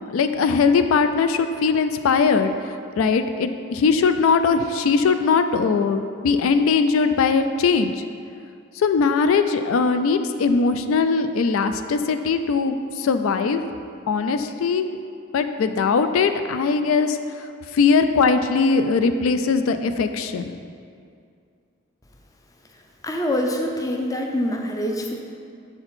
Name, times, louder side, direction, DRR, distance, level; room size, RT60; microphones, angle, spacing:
voice 1, 0.1-2.5 2.9-7.9 8.8-13.6 14.1-14.9 15.3-17.5 17.7-20.5, left 5 dB, 80° left, 9 dB, 0.3 m, -20 dB
voice 2, 23.0-25.1, left 1 dB, 15° left, 2 dB, 0.4 m, -25 dB
6.7 x 4.2 x 4.3 m, 2.3 s
head